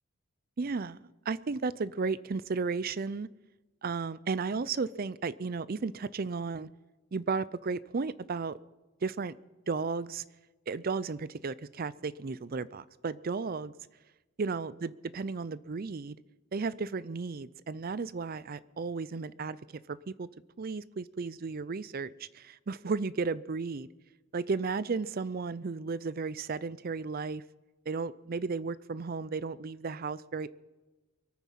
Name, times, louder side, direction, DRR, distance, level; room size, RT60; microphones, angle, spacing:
voice 1, 0.6-1.0 1.3-3.3 3.8-6.7 7.1-8.6 9.0-9.3 9.7-10.2 10.7-13.7 14.4-16.2 16.5-20.3 20.6-23.9 24.3-27.4 27.9-30.5, right 4 dB, 45° right, 0.5 m, -34 dB
23.0 x 9.3 x 5.7 m
head